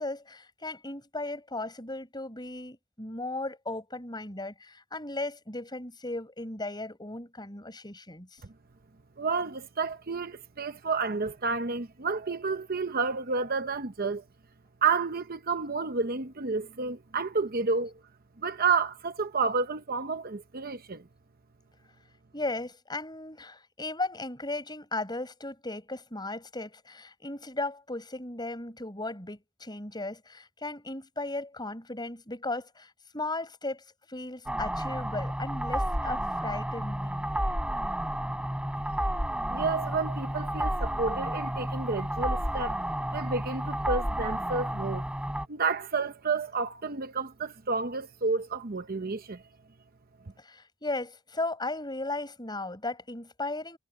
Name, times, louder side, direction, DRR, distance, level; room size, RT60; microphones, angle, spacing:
voice 1, 0.0-8.4 22.3-37.3 50.4-53.8, left 2 dB, 20° left, 7.8 m, -36 dB
voice 2, 9.2-14.2 14.8-17.9 18.4-21.0 39.5-42.8 43.1-45.0 45.5-49.4, right 4 dB, 45° right, 0.8 m, -30 dB
sound 1, 34.5-45.5, right 1 dB, 5° right, 7.2 m, -31 dB
head